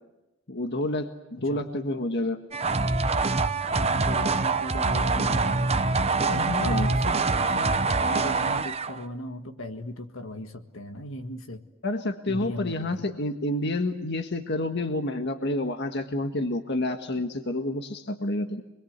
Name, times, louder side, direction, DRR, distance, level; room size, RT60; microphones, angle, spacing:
voice 1, 0.5-2.4 6.6-6.9 11.8-18.6, left 1 dB, 55° left, 6 dB, 1.6 m, -29 dB
sound 1, 2.5-9.0, right 3 dB, 30° right, 0.8 m, -25 dB
voice 2, 4.0-11.6 12.3-13.1, left 2 dB, 70° left, 6 dB, 1.8 m, -37 dB
27.0 x 22.5 x 8.2 m, 0.98 s
head